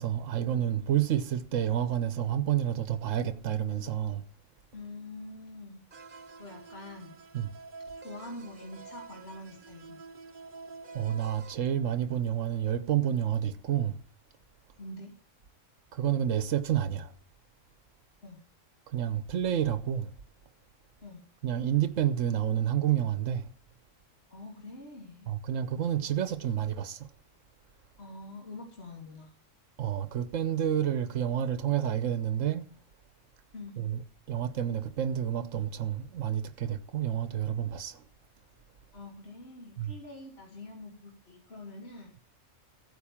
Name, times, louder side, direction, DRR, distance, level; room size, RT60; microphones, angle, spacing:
voice 1, 0.0-4.2 7.3-7.5 10.9-14.0 15.9-17.1 18.9-20.1 21.4-23.5 25.3-27.1 29.8-32.6 33.8-34.0 34.3-38.0 39.8-39.9, right 10 dB, 80° right, 1.2 m, -29 dB
voice 2, 4.7-5.8 6.4-7.2 7.9-10.0 14.8-15.1 18.2-18.4 21.0-21.2 24.3-25.3 28.0-29.3 33.5-33.8 38.9-42.1, left 2 dB, 55° left, 3.2 m, -45 dB
sound 1, 5.9-11.5, right 4 dB, 45° right, 1.0 m, -48 dB
15.5 x 9.5 x 7.1 m
omnidirectional pair, 1.3 m